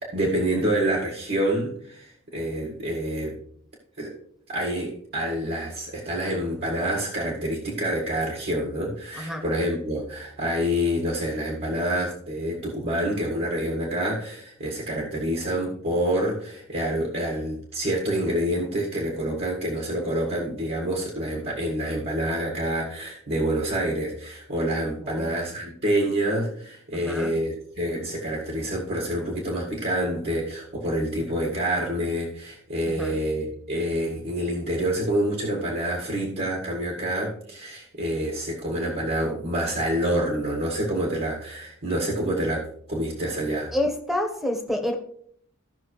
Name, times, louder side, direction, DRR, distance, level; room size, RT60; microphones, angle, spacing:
voice 1, 0.0-3.4 4.0-4.1 4.5-43.7, right 1 dB, 50° right, -2 dB, 1.8 m, -27 dB
voice 2, 9.1-9.4 25.0-25.3 26.9-27.3 33.0-33.2 43.7-44.9, left 1 dB, ahead, 4 dB, 1.2 m, -28 dB
15.5 x 5.9 x 3.2 m, 0.64 s
head